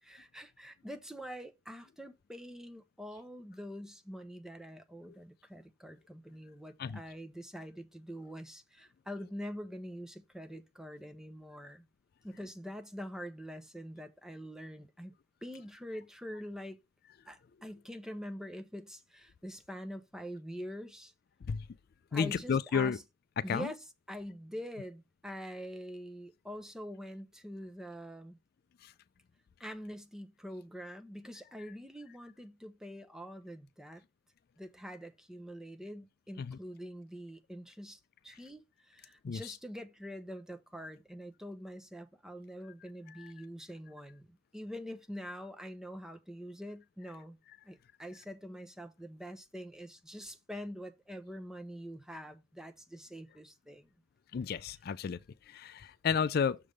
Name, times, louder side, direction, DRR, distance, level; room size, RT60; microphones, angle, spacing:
voice 1, 0.0-11.9 12.2-15.1 15.4-16.8 17.3-21.1 22.1-23.0 23.4-28.4 29.6-34.0 34.6-47.4 47.6-53.9, equal, 5° right, 0.7 m, -45 dB
voice 2, 22.1-23.0 23.4-23.7 28.8-28.9 36.4-36.6 39.2-39.5 43.2-43.3 54.3-55.2 55.5-56.6, left 6 dB, 50° left, 0.3 m, -32 dB
6.7 x 3.5 x 6.2 m
head